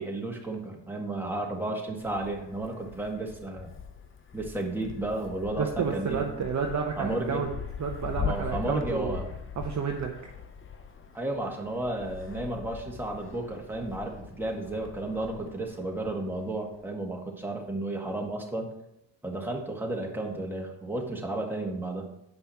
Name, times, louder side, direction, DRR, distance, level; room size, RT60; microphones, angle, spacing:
voice 1, 0.0-3.7 4.3-6.2 7.0-7.4 8.2-9.3 11.1-18.7 19.2-22.1, right 2 dB, 5° right, 0 dB, 1.8 m, -33 dB
Wind, 2.0-16.9, left 7 dB, 25° left, 0.8 m, -41 dB
voice 2, 5.6-7.5 7.8-9.2 9.6-10.1, right 6 dB, 35° right, 2 dB, 0.9 m, -30 dB
8.1 x 5.5 x 4.3 m, 0.82 s
hypercardioid pair, 65°, 49 cm